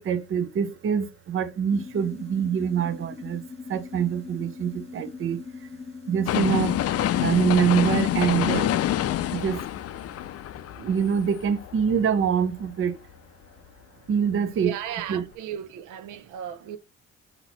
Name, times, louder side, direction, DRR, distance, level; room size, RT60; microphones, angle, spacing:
voice 1, 0.0-3.4 3.7-5.4 6.1-6.8 7.2-8.7 9.3-9.6 10.8-13.0 14.1-14.7 15.1-15.2, right 7 dB, 45° right, 0.6 m, -25 dB
sound 1, 1.7-7.2, left 5 dB, 20° left, 1.3 m, -41 dB
sound 2, 6.3-12.3 12.7-12.8, left 12 dB, 55° left, 0.4 m, -27 dB
voice 2, 14.6-16.8, right 10 dB, 90° right, 0.6 m, -34 dB
4.0 x 2.9 x 4.1 m
cardioid pair, 90°, 30 cm